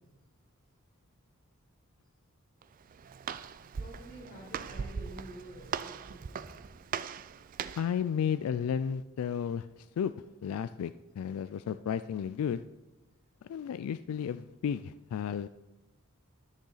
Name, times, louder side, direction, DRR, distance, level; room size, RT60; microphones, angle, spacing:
Walk footsteps, 2.6-8.0, right 6 dB, 40° right, 0.3 m, -40 dB
voice 1, 3.8-6.6, right 1 dB, 45° left, -3 dB, 2.9 m, -49 dB
voice 2, 7.7-10.1 10.4-12.6 13.4-15.5, left 8 dB, 85° left, 13 dB, 0.3 m, -33 dB
13.0 x 6.5 x 4.0 m, 1.0 s
head